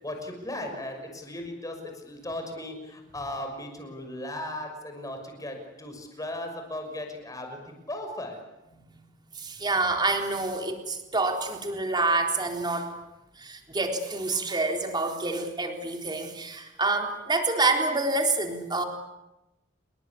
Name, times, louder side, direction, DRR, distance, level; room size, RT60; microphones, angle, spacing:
voice 1, 0.0-8.4, left 1 dB, 20° left, 4 dB, 6.2 m, -37 dB
voice 2, 9.3-13.0 13.4-18.8, right 3 dB, 25° right, 3 dB, 3.9 m, -27 dB
29.0 x 22.5 x 8.5 m, 0.94 s
head